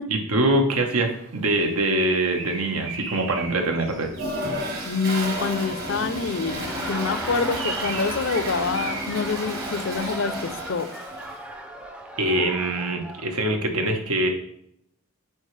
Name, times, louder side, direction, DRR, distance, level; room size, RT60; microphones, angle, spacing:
voice 1, 0.1-4.1 12.2-14.3, right 1 dB, 85° right, 4 dB, 1.1 m, -23 dB
Bird, 1.1-5.2 6.8-10.3, right 4 dB, 65° right, 1.2 m, -38 dB
Toilet flush, 4.1-11.4, equal, 45° right, 1.2 m, -32 dB
voice 2, 4.8-10.9, left 4 dB, 60° left, 11 dB, 0.5 m, -26 dB
Laughter, 6.5-13.3, equal, 5° right, 0.5 m, -37 dB
9.0 x 4.9 x 3.3 m, 0.75 s
head